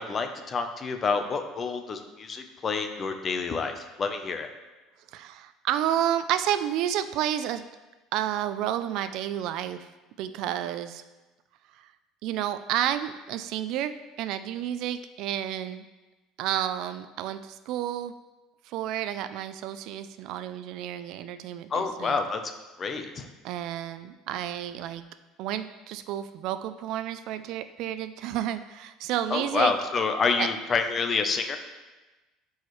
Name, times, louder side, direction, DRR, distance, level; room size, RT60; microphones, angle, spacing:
voice 1, 0.0-4.5 21.7-22.4 22.8-23.3 29.3-31.6, left 4 dB, 25° left, 6 dB, 0.6 m, -28 dB
voice 2, 5.1-7.6 8.1-9.9 10.2-11.0 11.8-11.9 12.2-15.8 16.4-18.1 18.7-22.2 23.4-25.0 25.4-29.7 30.4-30.5, right 11 dB, 55° right, 12 dB, 0.3 m, -30 dB
12.5 x 4.7 x 3.1 m, 1.1 s
cardioid pair, 160°, 0 cm